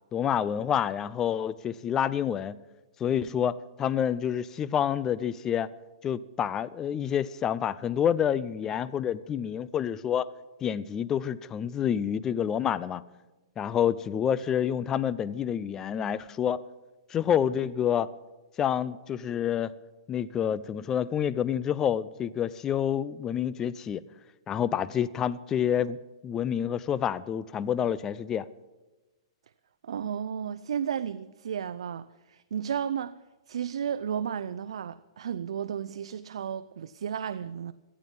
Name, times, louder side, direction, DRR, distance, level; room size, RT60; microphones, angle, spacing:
voice 1, 0.1-2.6 3.0-5.7 6.0-10.3 10.6-13.0 13.6-16.6 17.1-18.1 18.6-19.7 20.1-24.0 24.5-28.5, left 9 dB, 15° left, 0.4 m, -28 dB
voice 2, 29.8-33.1 33.5-37.7, right 8 dB, 80° right, 0.5 m, -33 dB
18.5 x 12.5 x 5.4 m
hypercardioid pair, 160°, 3 cm